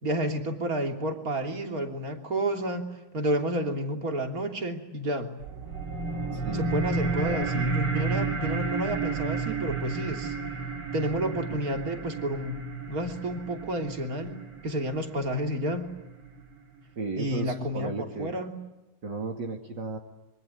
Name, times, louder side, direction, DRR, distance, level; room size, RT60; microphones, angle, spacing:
voice 1, 0.0-5.3 6.5-10.4 10.9-12.6 12.9-15.9 17.2-17.9 18.2-18.6, right 1 dB, 45° right, 4 dB, 3.5 m, -30 dB
sound 1, 5.4-16.4, right 4 dB, 90° right, 3.5 m, -32 dB
voice 2, 6.3-6.7 7.2-7.5 17.0-18.3 19.0-20.0, right 3 dB, 60° right, 3 dB, 2.9 m, -34 dB
26.0 x 24.5 x 9.3 m, 0.99 s
omnidirectional pair, 2.2 m